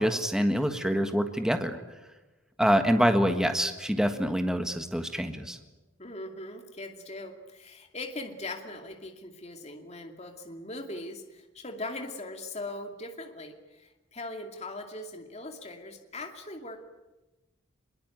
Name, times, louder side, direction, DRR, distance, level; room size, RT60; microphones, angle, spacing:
voice 1, 0.0-1.8 2.6-5.6, equal, 5° right, 7 dB, 1.5 m, -26 dB
voice 2, 6.0-16.8, left 2 dB, 30° left, 4 dB, 2.6 m, -40 dB
24.5 x 22.5 x 9.2 m, 1.1 s
head